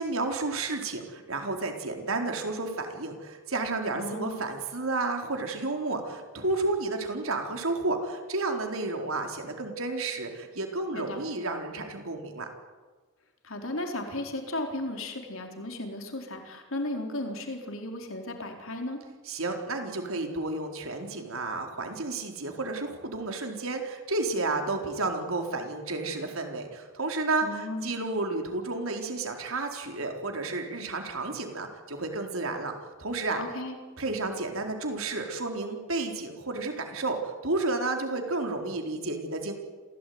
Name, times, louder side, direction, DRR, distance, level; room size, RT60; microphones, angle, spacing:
voice 1, 0.0-12.5 19.3-33.4 34.0-39.5, right 2 dB, 80° right, 3 dB, 4.2 m, -31 dB
voice 2, 3.9-4.4 10.9-11.2 13.4-19.0 27.4-27.9 33.4-33.8, left 1 dB, 70° left, 3 dB, 4.3 m, -35 dB
27.0 x 17.0 x 9.6 m, 1.4 s
head